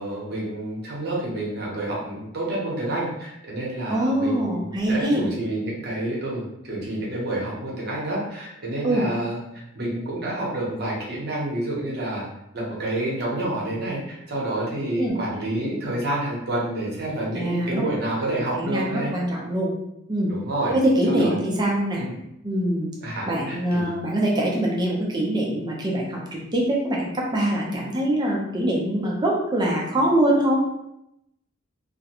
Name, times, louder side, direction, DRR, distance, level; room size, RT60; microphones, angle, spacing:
voice 1, 0.0-12.3 12.5-19.1 20.3-20.8 21.1-21.3 22.0-22.1 23.0-23.9, right 1 dB, 50° right, -4 dB, 0.8 m, -29 dB
voice 2, 3.9-5.3 8.8-9.0 15.0-15.2 17.3-17.8 18.5-19.7 20.1-20.3 20.7-22.0 22.4-22.9 23.3-30.6, right 1 dB, 20° right, -2 dB, 0.5 m, -23 dB
2.4 x 2.1 x 2.8 m, 0.82 s
head